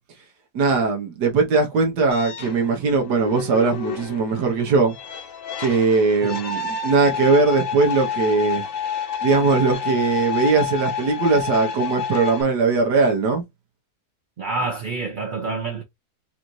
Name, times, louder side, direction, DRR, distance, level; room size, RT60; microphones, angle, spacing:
voice 1, 0.5-4.9 5.6-8.7 9.2-13.4, right 4 dB, 90° right, 1.6 m, -20 dB
sound 1, 2.1-12.4, left 7 dB, 60° left, 1.1 m, -29 dB
voice 2, 14.4-15.8, right 3 dB, 50° right, 0.6 m, -27 dB
4.9 x 2.6 x 3.0 m
omnidirectional pair, 1.7 m